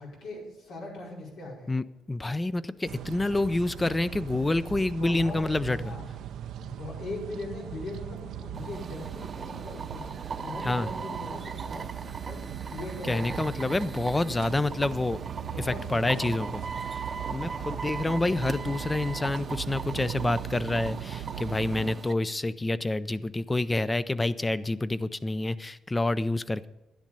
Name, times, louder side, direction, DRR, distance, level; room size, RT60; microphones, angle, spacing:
voice 1, 0.0-1.7 5.0-6.1 6.6-10.0 10.4-13.8 15.5-16.5 17.6-17.9, left 2 dB, 85° left, -4 dB, 5.0 m, -40 dB
voice 2, 1.7-5.9 10.6-10.9 13.1-15.2 15.6-17.0 17.3-26.7, left 2 dB, 20° left, 15 dB, 0.5 m, -28 dB
sound 1, 2.9-21.9, right 9 dB, 80° right, 0.5 m, -39 dB
sound 2, 8.5-22.1, right 5 dB, 40° right, 0.7 m, -39 dB
11.5 x 10.5 x 5.4 m, 0.93 s
cardioid pair, 90°, 0 cm